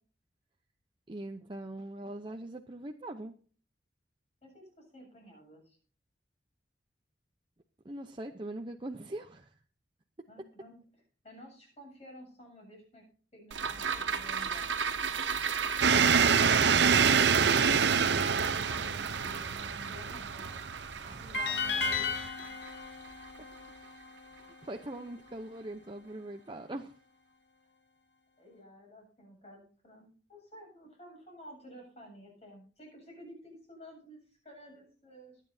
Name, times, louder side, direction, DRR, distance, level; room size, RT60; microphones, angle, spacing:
voice 1, 1.1-3.3 7.8-9.5 21.0-21.4 24.6-26.9, right 1 dB, 25° right, 4 dB, 0.6 m, -42 dB
voice 2, 4.4-5.8 10.3-10.8 11.2-13.1 13.3-14.7 16.7-20.7 21.2-22.6 28.4-35.4, equal, 35° left, 1 dB, 7.5 m, -52 dB
sound 1, 13.5-24.0 24.4-24.5, right 6 dB, 80° right, 1.7 m, -36 dB
sound 2, 15.8-22.3, right 6 dB, 60° right, 0.7 m, -26 dB
sound 3, 21.3-24.5, left 4 dB, 65° left, 2.1 m, -35 dB
22.5 x 9.2 x 2.7 m, 0.42 s
head